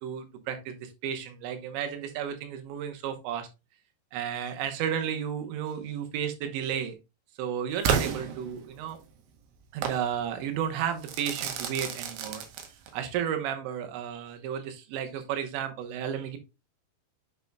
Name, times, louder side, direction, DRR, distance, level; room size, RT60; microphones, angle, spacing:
voice 1, 0.0-3.5 4.1-6.9 7.4-9.0 9.7-12.4 12.9-16.4, right 9 dB, 90° right, 6 dB, 3.3 m, -33 dB
Crackle / Fireworks, 7.8-9.0 9.8-10.1 11.0-13.0, right 7 dB, 70° right, 2.3 m, -31 dB
8.8 x 5.3 x 2.3 m, 0.26 s
omnidirectional pair, 5.1 m